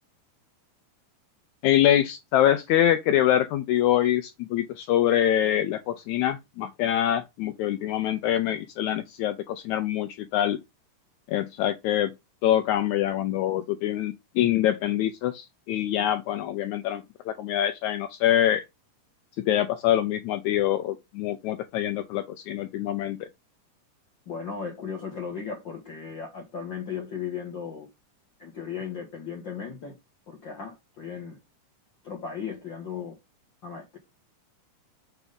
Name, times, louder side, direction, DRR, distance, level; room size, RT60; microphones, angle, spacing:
voice 1, 1.6-10.6 11.3-12.1 12.4-18.6 19.4-23.2, left 11 dB, 90° left, 1.7 m, -25 dB
voice 2, 24.3-27.9 28.4-29.9 30.3-31.4 32.0-33.2 33.6-34.0, left 6 dB, 60° left, 1.2 m, -36 dB
7.1 x 3.6 x 5.3 m
omnidirectional pair, 3.9 m